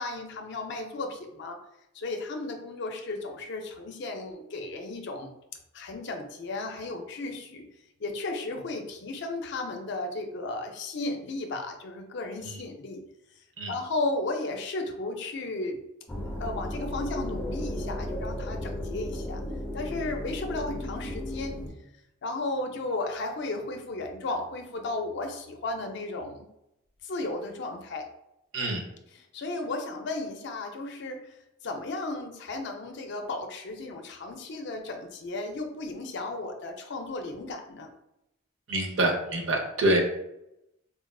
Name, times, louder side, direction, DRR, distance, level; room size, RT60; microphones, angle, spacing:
voice 1, 0.0-1.6 1.9-5.3 5.7-7.7 8.0-13.0 13.7-15.8 16.4-19.4 19.7-21.6 22.2-26.5 27.0-28.1 29.3-31.3 31.6-37.9, left 2 dB, 55° left, 4 dB, 0.4 m, -34 dB
sound 1, 16.1-21.7, left 1 dB, 10° left, 0.6 m, -34 dB
voice 2, 38.7-40.1, right 1 dB, 70° right, 1 dB, 0.7 m, -26 dB
4.1 x 2.3 x 2.3 m, 0.85 s
head